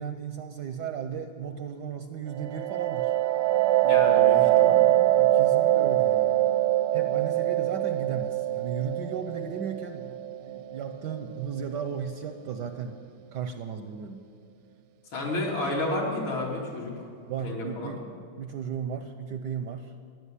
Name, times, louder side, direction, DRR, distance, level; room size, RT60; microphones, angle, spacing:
voice 1, 0.0-3.1 4.4-4.6 5.1-6.4 6.9-13.0 13.3-14.2 17.3-18.0 18.4-19.9, right 7 dB, 70° right, 8 dB, 1.1 m, -35 dB
sound 1, 2.3-11.8, right 14 dB, 85° right, 1.6 m, -23 dB
voice 2, 3.8-4.8 15.1-16.9 17.4-18.0, left 2 dB, 65° left, -2 dB, 3.4 m, -31 dB
15.5 x 10.5 x 8.3 m, 2.3 s
omnidirectional pair, 2.4 m